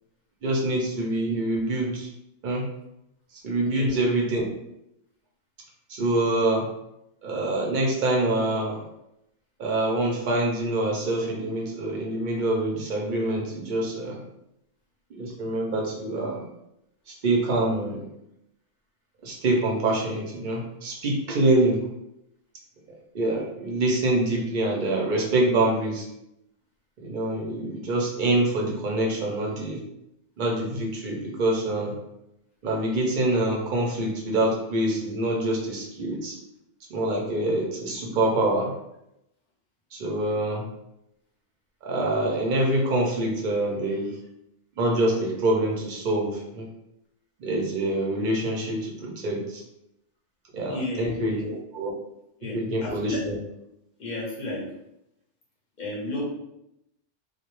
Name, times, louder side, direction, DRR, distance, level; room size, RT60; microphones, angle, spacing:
voice 1, 0.4-2.1 2.4-2.7 3.4-4.5 5.9-6.7 7.2-8.8 9.6-14.2 15.1-16.4 17.1-18.0 19.2-21.8 23.1-26.1 27.0-29.8 30.4-32.0 32.6-36.4 36.9-38.7 39.9-40.7 41.8-44.1 44.8-46.7 47.4-49.6 50.5-51.9 52.5-53.4, right 1 dB, 55° right, -2 dB, 0.6 m, -25 dB
voice 2, 50.7-51.4 52.4-53.3 54.0-54.7 55.8-56.2, left 2 dB, 50° left, -4 dB, 0.6 m, -32 dB
2.1 x 2.0 x 2.9 m, 0.84 s
omnidirectional pair, 1.2 m